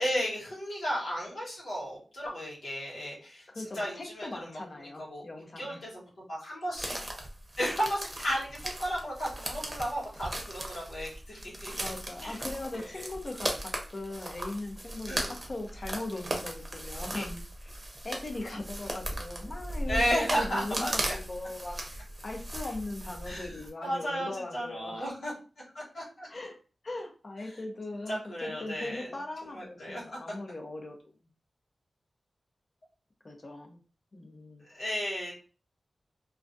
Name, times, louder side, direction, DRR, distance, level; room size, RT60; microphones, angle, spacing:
voice 1, 0.0-3.5 3.7-4.3 5.0-5.2 5.6-6.9 7.6-11.7 12.2-12.4 12.7-13.1 15.1-15.3 17.1-17.3 19.9-21.1 23.2-23.5 23.8-25.3 25.7-26.3 28.1-29.1 29.5-30.2 34.7-35.4, equal, 90° left, -5 dB, 1.1 m, -34 dB
voice 2, 3.5-5.8 11.8-17.7 18.0-25.1 26.3-26.6 26.8-31.1 33.2-33.8 34.1-34.6, left 2 dB, 50° left, 2 dB, 0.7 m, -39 dB
sound 1, 6.7-23.7, right 1 dB, 30° right, 0.7 m, -38 dB
2.3 x 2.2 x 2.5 m, 0.38 s
cardioid pair, 50°, 0 cm